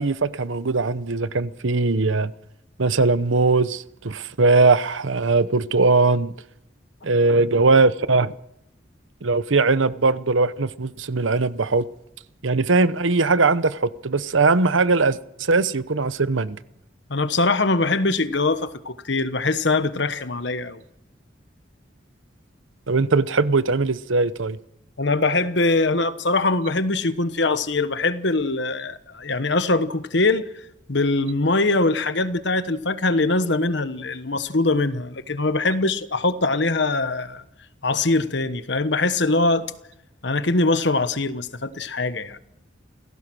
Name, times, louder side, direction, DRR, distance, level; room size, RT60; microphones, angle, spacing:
voice 1, 0.0-2.3 2.8-6.3 7.0-8.3 9.2-11.8 12.4-15.2 15.5-16.6 22.9-24.6, right 3 dB, 85° right, 0.9 m, -20 dB
voice 2, 17.1-20.8 25.0-30.5 30.9-37.4 37.8-39.7 40.2-42.4, left 3 dB, 65° left, 1.2 m, -22 dB
29.5 x 16.5 x 6.2 m
head